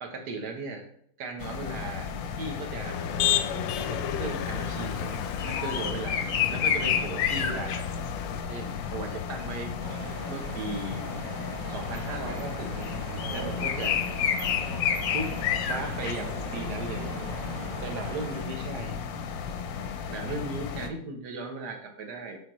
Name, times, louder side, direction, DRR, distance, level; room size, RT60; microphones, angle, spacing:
voice 1, 0.0-0.9 1.2-2.1 2.4-3.0 3.8-7.9 8.5-9.8 10.3-11.0 11.7-13.0 13.3-13.9 15.1-15.3 15.7-17.1 17.8-19.0 20.1-22.4, right 3 dB, 65° right, 3 dB, 1.5 m, -37 dB
sound 1, 1.4-20.9, left 7 dB, 70° left, 1.0 m, -32 dB
Motor vehicle (road), 2.8-8.4, left 9 dB, 85° left, 1.3 m, -32 dB
sound 2, 9.8-18.4, right 3 dB, 85° right, 2.0 m, -40 dB
7.2 x 4.9 x 3.0 m, 0.66 s
omnidirectional pair, 1.9 m